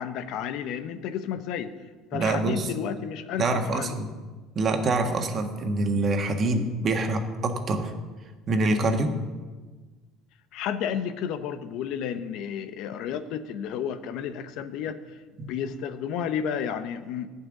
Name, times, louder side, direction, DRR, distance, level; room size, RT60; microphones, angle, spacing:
voice 1, 0.0-1.7 2.1-4.0 10.5-15.0 15.5-17.3, left 8 dB, 70° left, 11 dB, 0.8 m, -32 dB
voice 2, 2.1-2.7 3.4-4.1 4.5-7.9 8.5-9.1 15.4-15.5, right 2 dB, 40° right, 5 dB, 1.5 m, -25 dB
12.0 x 5.6 x 9.1 m, 1.3 s
supercardioid pair, 100°, 0 cm